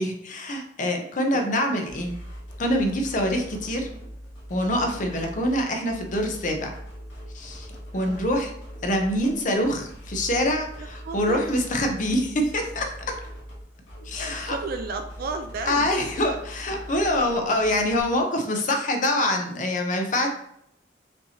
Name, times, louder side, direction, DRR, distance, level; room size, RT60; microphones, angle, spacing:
voice 1, 0.0-2.1 2.6-3.9 4.5-6.7 7.3-7.7 7.9-8.5 8.8-13.2 14.0-14.6 15.7-20.3, left 1 dB, 45° left, 3 dB, 0.6 m, -25 dB
sound 1, 1.9-18.0, equal, 85° left, 1.5 m, -41 dB
voice 2, 7.9-8.3 10.8-11.5 14.1-15.9, right 3 dB, 55° right, 6 dB, 0.3 m, -34 dB
5.2 x 2.8 x 2.8 m, 0.72 s
head